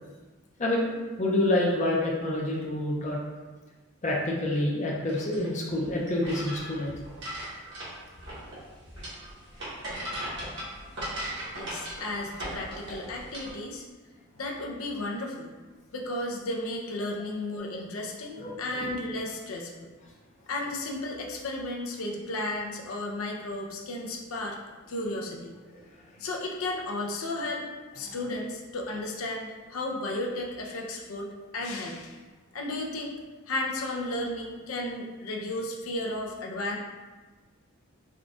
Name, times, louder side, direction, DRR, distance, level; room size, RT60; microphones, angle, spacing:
voice 1, 0.6-0.9 1.2-3.2 4.0-6.9 18.4-18.8 25.7-25.8, left 1 dB, 35° left, -3 dB, 0.5 m, -27 dB
sound 1, 5.1-13.5, equal, 55° right, 1.2 m, -38 dB
voice 2, 11.5-13.9 14.3-15.5 15.9-19.9 20.5-24.6 24.9-25.6 26.2-32.2 32.5-33.2 33.5-36.8, left 2 dB, 80° left, 0 dB, 0.5 m, -34 dB
3.7 x 2.2 x 3.6 m, 1.3 s
head